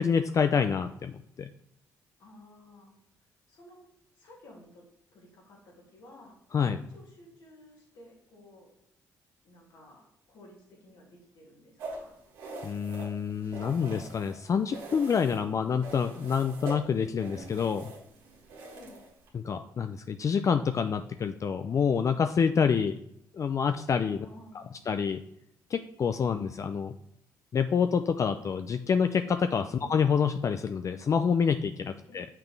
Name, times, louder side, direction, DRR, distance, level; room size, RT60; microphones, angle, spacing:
voice 1, 0.0-1.5 6.5-6.8 12.6-17.9 19.3-23.0 23.3-24.3 24.5-25.2 25.7-26.9 27.5-32.3, left 6 dB, 45° left, 8 dB, 0.4 m, -27 dB
voice 2, 2.2-2.9 3.5-3.9 4.2-4.8 5.1-6.4 6.9-8.7 9.4-12.2 18.7-19.0 24.2-24.9 29.8-30.0 32.0-32.2, left 1 dB, 75° left, -3 dB, 2.6 m, -54 dB
sound 1, 11.8-14.4 14.7-15.5 15.8-19.3, right 2 dB, 90° right, 1.7 m, -43 dB
6.8 x 5.9 x 3.3 m, 0.75 s
supercardioid pair, 65°, 7 cm